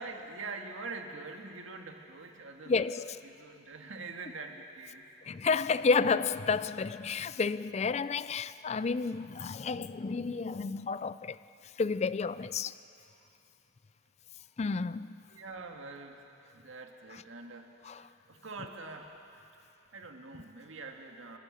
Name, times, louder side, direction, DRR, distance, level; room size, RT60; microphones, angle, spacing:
voice 1, 0.0-5.1 13.2-13.3 14.4-14.5 15.3-19.2 19.9-21.4, right 3 dB, 90° right, 1.8 m, -45 dB
voice 2, 2.7-3.2 5.3-11.4 11.8-12.7 14.6-15.2 17.9-18.0, left 4 dB, 35° left, 0.4 m, -30 dB
26.0 x 15.5 x 6.5 m
head